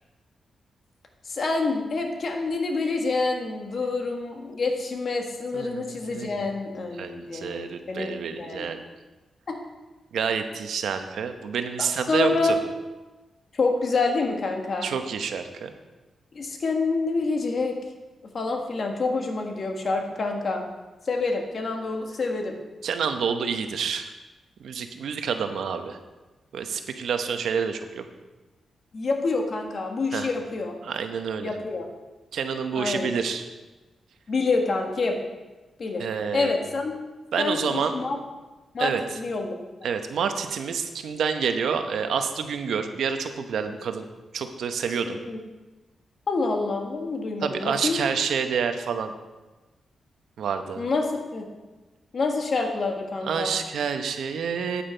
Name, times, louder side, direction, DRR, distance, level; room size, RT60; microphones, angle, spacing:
voice 1, 1.3-8.7 9.5-9.6 12.1-12.6 13.5-14.9 16.3-17.8 18.3-20.6 21.1-22.5 28.9-30.7 31.4-31.9 32.7-33.1 34.3-35.2 35.8-36.1 36.3-36.9 37.4-38.2 38.7-39.5 45.1-45.4 46.3-48.0 50.8-51.5 52.1-53.6, left 3 dB, 55° left, 3 dB, 1.5 m, -27 dB
voice 2, 5.5-6.6 7.0-8.8 10.1-12.6 14.8-15.7 22.8-24.1 24.6-26.0 26.5-28.1 30.1-30.3 30.8-31.6 32.3-33.4 36.0-36.5 37.3-38.0 38.8-39.2 39.8-44.1 44.3-45.2 47.4-49.1 50.4-50.8 53.2-54.8, right 6 dB, 85° right, 7 dB, 0.8 m, -28 dB
9.0 x 8.6 x 4.5 m, 1.2 s
cardioid pair, 100°, 0 cm